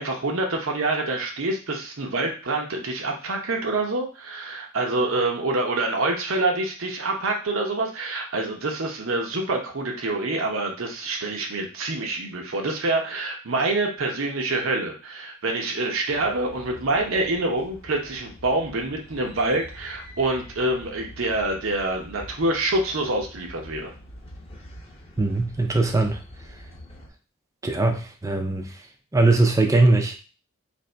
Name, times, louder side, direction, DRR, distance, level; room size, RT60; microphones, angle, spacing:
voice 1, 0.0-23.9, right 2 dB, 75° right, 1 dB, 0.7 m, -26 dB
sound 1, 16.1-27.1, equal, 30° left, 0.8 m, -45 dB
voice 2, 25.2-26.2 27.6-28.8 29.1-30.2, right 2 dB, 15° right, 4 dB, 0.5 m, -20 dB
3.0 x 2.6 x 4.3 m, 0.35 s
head